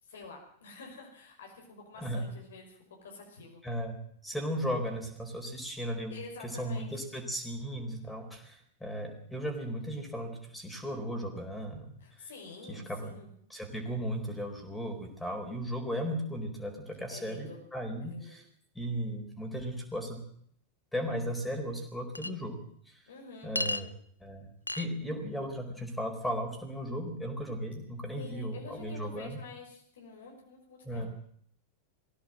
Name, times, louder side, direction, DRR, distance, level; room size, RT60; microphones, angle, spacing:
voice 1, 0.0-3.6 6.1-6.9 12.0-13.3 17.1-17.6 18.0-18.4 23.1-23.5 28.2-31.1, left 4 dB, 65° left, 1 dB, 5.5 m, -48 dB
voice 2, 3.6-4.0 4.2-6.2 6.4-12.3 12.7-13.1 13.5-18.4 18.7-20.2 20.9-22.6 22.9-23.1 23.4-23.9 24.2-29.4 30.8-31.1, equal, 5° left, 4 dB, 4.6 m, -36 dB
Chink clink, 22.2-22.3 23.6-23.8 24.7-24.9, left 2 dB, 85° left, 0.7 m, -32 dB
20.5 x 16.0 x 7.7 m, 0.64 s
figure-of-eight pair, 90°, 0 cm